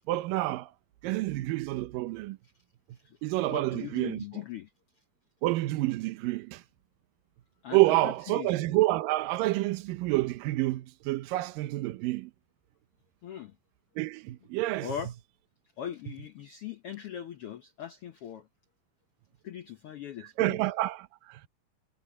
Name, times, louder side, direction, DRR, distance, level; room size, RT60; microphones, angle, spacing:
voice 1, 0.1-0.7 1.0-2.4 3.2-4.2 5.4-6.6 7.7-12.3 14.0-14.9 20.2-21.5, right 18 dB, 85° right, 2.5 m, -28 dB
voice 2, 3.5-4.7 7.6-8.5 13.2-13.5 14.8-15.1 15.8-18.5 19.4-20.6, left 10 dB, 80° left, 1.3 m, -40 dB
omnidirectional pair, 3.9 m